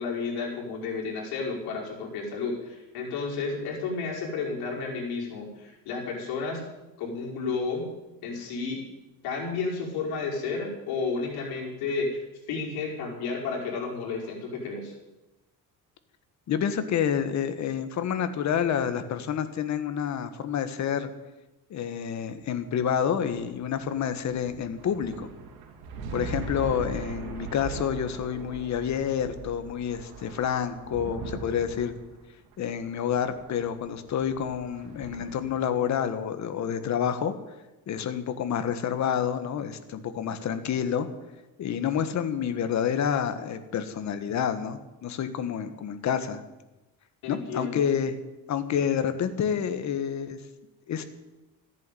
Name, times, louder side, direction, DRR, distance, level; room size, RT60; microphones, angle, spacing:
voice 1, 0.0-6.6 7.0-7.9 8.2-8.8 9.2-12.2 12.5-14.9 47.2-47.9, left 4 dB, 85° left, -2 dB, 5.5 m, -32 dB
voice 2, 16.5-21.1 21.7-25.3 26.1-31.9 32.6-37.3 37.9-41.1 41.6-46.4 47.3-48.1 48.5-50.4 50.9-51.0, left 8 dB, 50° left, 10 dB, 1.7 m, -28 dB
sound 1, 22.4-36.0, right 4 dB, 90° right, 2.9 m, -41 dB
14.5 x 10.5 x 9.3 m, 1.0 s
cardioid pair, 140°, 37 cm